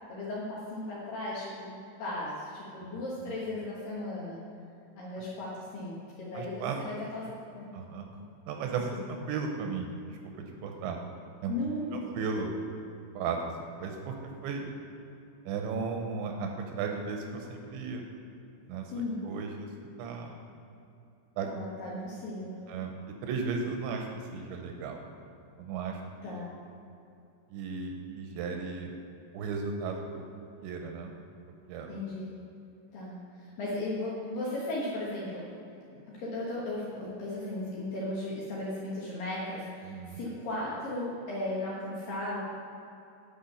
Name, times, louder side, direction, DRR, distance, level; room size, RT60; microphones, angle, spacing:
voice 1, 0.1-4.4 5.0-7.2 7.5-7.7 11.5-12.1 18.9-19.2 21.4-22.6 26.2-26.5 31.9-32.3 32.9-35.5 36.1-42.5, left 2 dB, 65° left, -6 dB, 2.3 m, -36 dB
voice 2, 6.3-6.8 7.7-8.1 8.5-11.0 11.4-11.6 11.9-12.5 13.1-13.5 13.8-14.2 14.4-14.7 15.5-18.0 18.7-18.9 19.2-19.7 20.0-20.3 21.4-21.5 22.7-25.0 25.6-26.3 27.5-28.9 29.3-30.2 30.6-31.1 31.7-31.9 39.8-40.2, right 5 dB, 80° right, 3 dB, 2.8 m, -35 dB
10.5 x 6.0 x 5.5 m, 2.7 s
omnidirectional pair, 5.6 m